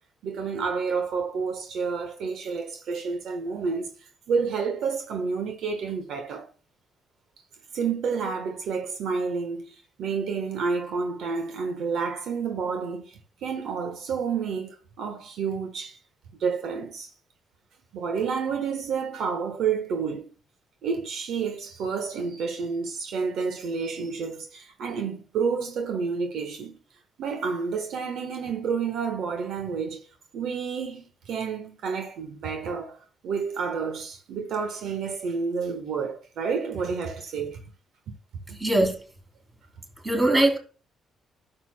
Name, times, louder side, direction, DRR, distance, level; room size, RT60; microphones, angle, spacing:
voice 1, 0.2-6.5 7.7-16.0 16.4-17.1 17.9-20.3 20.8-26.8 27.2-30.0 30.3-37.6 38.5-38.6 40.2-40.4, right 5 dB, 75° right, 1.3 m, -30 dB
voice 2, 38.6-39.0 40.0-40.6, right 1 dB, 20° right, 3.1 m, -21 dB
12.0 x 6.8 x 2.2 m
cardioid pair, 90°, 0 cm